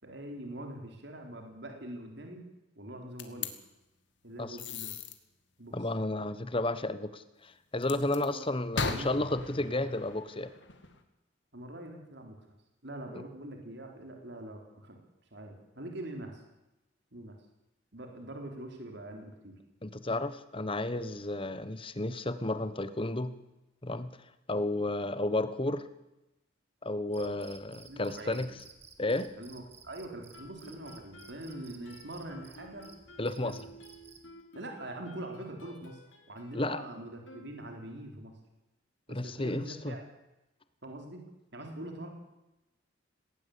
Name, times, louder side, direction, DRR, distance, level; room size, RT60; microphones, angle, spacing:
voice 1, 0.0-2.4 2.8-3.5 4.2-4.9 5.6-5.9 7.9-8.5 8.8-9.2 11.5-12.4 12.8-15.0 15.3-16.4 17.1-17.4 17.9-19.6 27.9-28.4 29.4-32.9 33.2-33.6 34.5-36.0 36.3-38.3 39.1-40.0 40.8-41.2 41.5-42.1, right 1 dB, 60° right, 3 dB, 3.8 m, -43 dB
sound 1, 3.2-3.5 4.6-5.1 7.8-8.3 8.7-11.0, left 4 dB, 65° left, 2.2 m, -37 dB
voice 2, 5.7-10.5 19.8-23.3 23.8-24.1 24.5-25.9 26.8-28.5 29.0-29.3 33.2-33.6 36.5-36.8 39.1-39.9, left 2 dB, 30° left, 13 dB, 1.2 m, -32 dB
Cricket, 27.1-34.3, right 5 dB, 35° right, 2.5 m, -56 dB
Guitar, 30.3-38.0, left 1 dB, 85° left, 4.0 m, -53 dB
18.5 x 18.0 x 8.5 m, 0.96 s
head